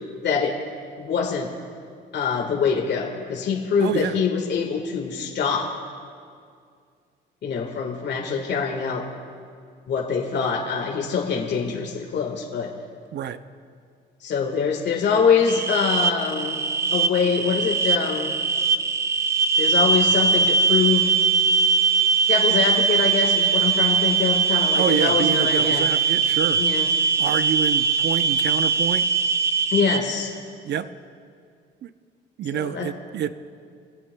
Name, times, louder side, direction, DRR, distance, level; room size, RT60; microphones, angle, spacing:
voice 1, 0.2-0.6 1.0-1.5 2.1-5.7 7.4-9.1 9.9-12.7 14.2-16.6 16.9-18.4 19.6-21.1 22.3-25.9 26.6-26.8 29.7-30.3 32.5-32.9, left 6 dB, 60° left, 0 dB, 1.6 m, -24 dB
voice 2, 3.8-4.2 13.1-13.4 24.7-26.6 27.2-29.1 30.6-30.9 31.8-31.9 32.4-33.3, right 9 dB, 60° right, 12 dB, 0.6 m, -27 dB
sound 1, 15.5-30.0, right 5 dB, 15° right, 0.7 m, -21 dB
25.0 x 16.5 x 2.2 m, 2.2 s
cardioid pair, 90°, 20 cm